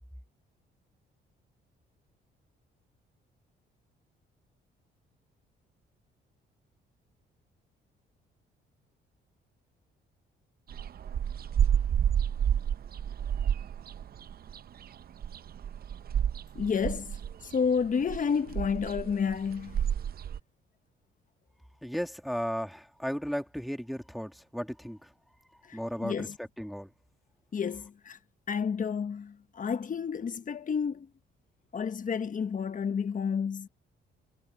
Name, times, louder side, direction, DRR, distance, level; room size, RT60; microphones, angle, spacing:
sound 1, 10.7-20.4, right 9 dB, 50° right, 0.7 m, -30 dB
voice 1, 16.5-19.9 25.6-26.4 27.5-28.2 28.5-31.1 31.7-33.7, left 6 dB, 40° left, 1.3 m, -31 dB
voice 2, 21.8-25.1 25.7-26.9, equal, ahead, 2.5 m, -35 dB
cardioid pair, 90°, 20 cm